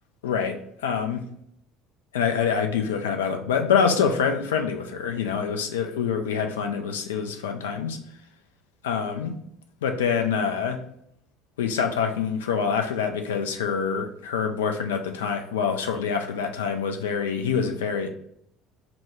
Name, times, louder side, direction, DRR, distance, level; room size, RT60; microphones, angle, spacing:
voice 1, 0.2-1.3 2.1-8.0 8.8-9.4 9.8-10.8 11.6-18.1, left 6 dB, 70° left, 5 dB, 0.5 m, -26 dB
4.8 x 2.2 x 3.6 m, 0.69 s
figure-of-eight pair, 60°, 0 cm